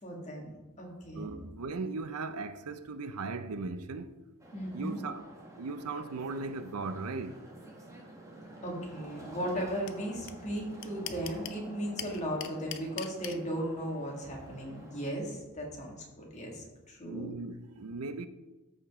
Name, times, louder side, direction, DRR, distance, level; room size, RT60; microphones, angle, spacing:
voice 1, 0.0-1.4 4.5-5.0 8.6-17.3, equal, 30° left, 2.0 m, -37 dB
voice 2, 1.1-4.2 4.7-5.3 5.6-7.5 17.0-18.3, right 3 dB, 80° right, 0.6 m, -38 dB
sound 1, 4.4-15.1, right 1 dB, 15° right, 1.4 m, -50 dB
sound 2, 9.9-10.0 10.3-10.4 10.6-11.6 12.0-13.4, left 11 dB, 60° left, 0.6 m, -39 dB
13.5 x 5.1 x 3.7 m
head